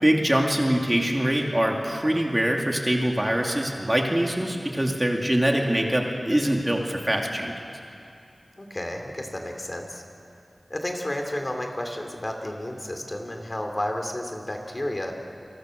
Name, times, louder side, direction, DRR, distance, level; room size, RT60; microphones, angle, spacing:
voice 1, 0.0-7.5, right 1 dB, 20° right, 1 dB, 2.6 m, -23 dB
voice 2, 8.6-10.0 10.7-15.1, left 1 dB, 30° left, 3 dB, 3.0 m, -31 dB
29.0 x 23.0 x 6.5 m, 2.5 s
wide cardioid pair, 70°, 0 cm